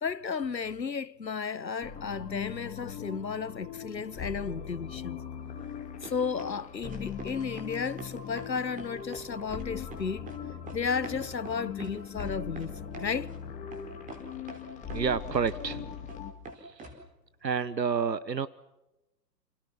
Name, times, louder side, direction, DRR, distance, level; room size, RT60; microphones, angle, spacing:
voice 1, 0.0-5.2 6.0-10.3 10.7-13.3, left 5 dB, 85° left, 1.1 m, -33 dB
sound 1, 1.8-16.3, left 8 dB, 15° left, 2.2 m, -40 dB
sound 2, 5.6-5.7 6.0-6.6 6.9-7.3 7.6-8.5 8.8-9.3 9.5-10.4 10.7-13.4 13.7-13.8 14.1-15.0 15.3-16.2 16.4-17.0, right 2 dB, 15° right, 4.5 m, -45 dB
voice 2, 14.9-16.0 16.6-16.9 17.4-18.5, right 6 dB, 80° right, 1.1 m, -30 dB
29.5 x 29.0 x 5.8 m
figure-of-eight pair, 120°, 50 cm